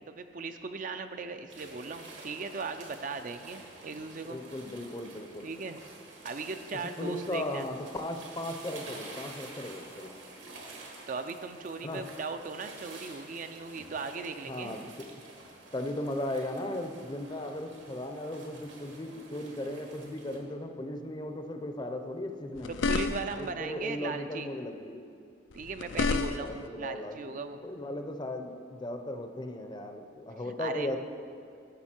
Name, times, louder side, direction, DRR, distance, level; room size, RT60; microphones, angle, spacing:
voice 1, 0.1-4.4 5.4-5.8 6.2-7.7 11.1-14.9 22.9-24.5 25.5-27.6 30.3-31.0, right 4 dB, 45° right, 8 dB, 0.4 m, -38 dB
sound 1, 1.5-20.4, right 2 dB, 70° right, 1.5 m, -49 dB
voice 2, 4.2-5.5 7.0-10.1 11.8-12.0 14.5-15.0 15.7-22.7 23.4-25.0 26.4-27.2 27.6-31.0, left 1 dB, 25° left, 6 dB, 0.6 m, -37 dB
sound 2, 22.6-23.5 25.5-26.7, left 4 dB, 85° left, 0.4 m, -30 dB
11.5 x 7.1 x 4.4 m, 2.5 s
head